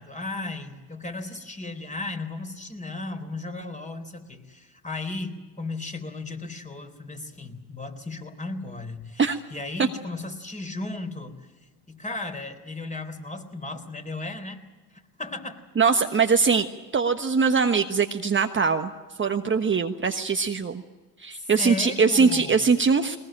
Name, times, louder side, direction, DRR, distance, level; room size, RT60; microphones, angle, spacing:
voice 1, 0.0-11.5 11.9-14.6 14.9-16.2 21.3-22.7, left 2 dB, 15° left, 7 dB, 3.7 m, -35 dB
voice 2, 15.8-16.7 16.9-18.9 19.2-20.8 21.2-23.2, right 5 dB, 25° right, 6 dB, 1.3 m, -22 dB
21.0 x 20.0 x 9.0 m, 1.3 s
hypercardioid pair, 70°, 48 cm